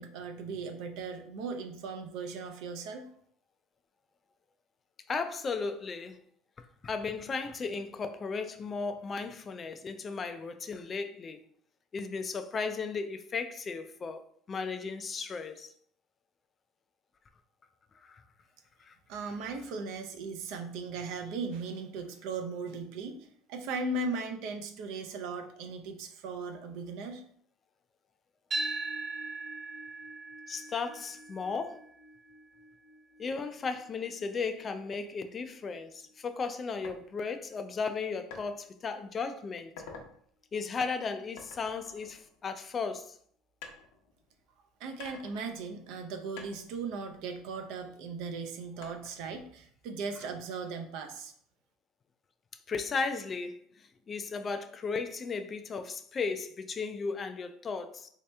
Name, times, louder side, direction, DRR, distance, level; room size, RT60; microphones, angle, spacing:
voice 1, 0.0-3.1 19.1-27.2 44.8-51.3, right 4 dB, 65° right, 0.5 m, -38 dB
voice 2, 5.1-6.2 6.6-11.4 11.9-14.2 14.5-15.7 18.0-18.2 18.8-19.0 30.5-31.8 33.2-39.7 40.5-43.2 52.7-58.1, left 4 dB, 25° left, 0.3 m, -35 dB
sound 1, 28.5-36.7, right 3 dB, 25° right, 1.1 m, -41 dB
sound 2, 36.8-37.0 38.3-38.5 39.0-39.2 39.6-40.1 41.4-42.8 43.6-44.5 45.0-46.1 46.4-48.0 48.8-49.4, left 4 dB, 85° left, 0.8 m, -49 dB
3.2 x 2.8 x 3.3 m
cardioid pair, 135°, 0 cm